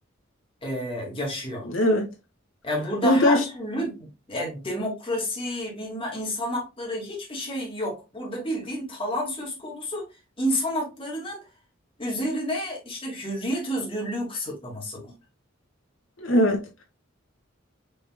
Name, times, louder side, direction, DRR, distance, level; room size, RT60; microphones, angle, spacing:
voice 1, 0.6-1.7 2.6-10.1 10.4-11.4 12.0-15.2, equal, 25° left, 2.0 m, -30 dB
voice 2, 1.6-2.1 3.0-3.4 16.2-16.8, left 1 dB, 75° left, 1.6 m, -21 dB
5.4 x 3.5 x 2.2 m
head